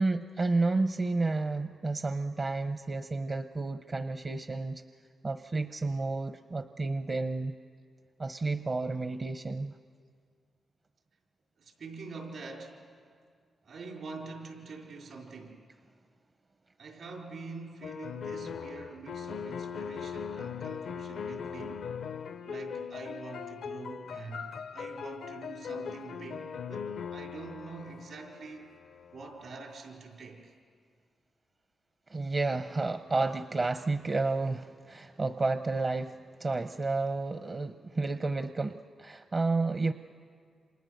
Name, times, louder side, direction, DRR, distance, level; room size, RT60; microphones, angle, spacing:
voice 1, 0.0-4.8 5.2-7.5 8.2-9.7 32.1-36.1 36.4-39.9, right 3 dB, 40° right, 10 dB, 0.7 m, -31 dB
voice 2, 11.6-12.8 13.6-15.6 16.8-21.9 22.4-28.7 29.1-30.5, right 4 dB, 75° right, 0 dB, 4.8 m, -45 dB
sound 1, 17.8-29.3, left 7 dB, 80° left, 0.6 m, -40 dB
29.5 x 27.0 x 6.6 m, 2.1 s
cardioid pair, 60°, 0 cm